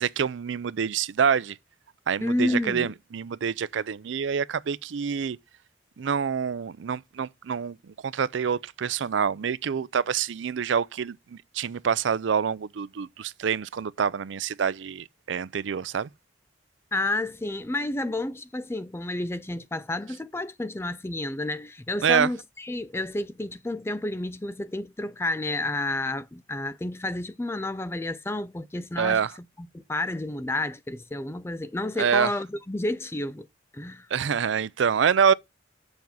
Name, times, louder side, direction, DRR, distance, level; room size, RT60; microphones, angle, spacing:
voice 1, 0.0-1.6 2.1-5.4 6.0-16.1 22.0-22.3 29.0-29.3 32.0-32.3 34.1-35.3, right 7 dB, 90° right, 0.4 m, -26 dB
voice 2, 2.2-2.9 16.9-29.2 29.6-33.5 33.7-34.1, left 2 dB, 15° left, 0.4 m, -30 dB
7.1 x 5.4 x 6.0 m
head